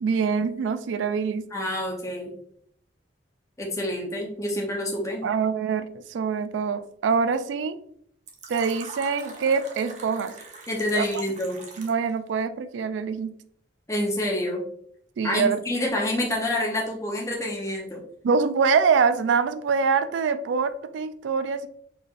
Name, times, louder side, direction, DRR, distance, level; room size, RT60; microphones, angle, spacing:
voice 1, 0.0-1.4 5.2-7.8 8.5-10.3 10.9-11.1 11.8-13.3 15.2-15.6 18.2-21.7, right 5 dB, 75° right, 12 dB, 0.3 m, -24 dB
voice 2, 1.5-2.3 3.6-5.2 10.7-11.6 13.9-14.6 15.2-18.0, left 1 dB, 15° left, -1 dB, 0.7 m, -27 dB
Fill (with liquid), 8.3-12.1, right 3 dB, 40° right, 0.7 m, -42 dB
4.5 x 3.3 x 2.4 m, 0.66 s
head